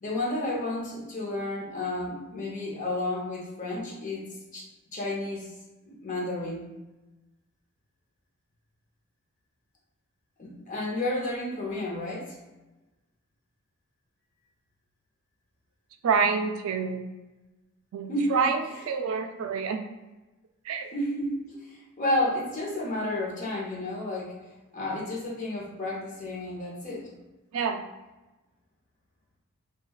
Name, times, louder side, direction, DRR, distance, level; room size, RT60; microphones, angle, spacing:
voice 1, 0.0-4.3 4.5-4.7 4.9-5.5 5.8-6.7 10.4-12.4 18.1-18.5 20.9-24.3 24.7-27.1, left 1 dB, 35° left, -4 dB, 0.7 m, -31 dB
voice 2, 16.0-17.0 17.9-18.6 18.9-19.8 20.7-20.9 27.5-27.8, right 5 dB, 75° right, 6 dB, 0.3 m, -27 dB
3.0 x 2.3 x 2.2 m, 1.1 s
head